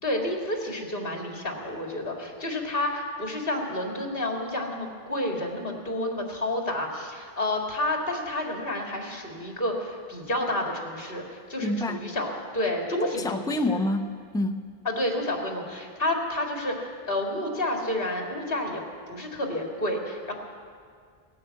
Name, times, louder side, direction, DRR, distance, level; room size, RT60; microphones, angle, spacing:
voice 1, 0.0-13.3 13.7-13.8 14.9-18.8 19.1-20.3, left 1 dB, 65° left, 1 dB, 2.4 m, -30 dB
voice 2, 11.6-12.1 13.0-14.7, left 1 dB, 5° left, 7 dB, 0.5 m, -28 dB
18.0 x 9.6 x 8.0 m, 2.1 s
omnidirectional pair, 1.0 m